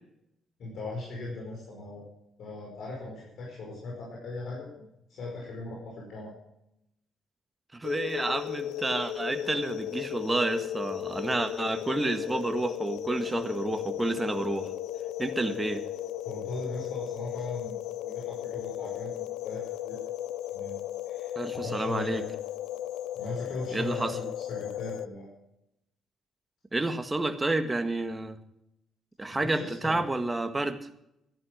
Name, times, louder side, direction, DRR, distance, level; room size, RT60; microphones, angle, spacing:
voice 1, 0.6-2.0 2.4-6.3 15.5-15.6 16.2-17.8 18.0-20.0 20.5-20.8 21.1-22.2 23.1-25.3 29.3-30.0, left 2 dB, 65° left, -2 dB, 5.1 m, -39 dB
voice 2, 7.7-14.7 15.2-15.8 21.3-22.2 23.7-24.1 26.7-28.4 29.2-30.8, right 2 dB, 15° right, 8 dB, 1.7 m, -30 dB
sound 1, 7.8-25.1, left 12 dB, 90° left, 0.5 m, -36 dB
13.5 x 11.0 x 6.6 m, 0.82 s
cardioid pair, 90°, 0 cm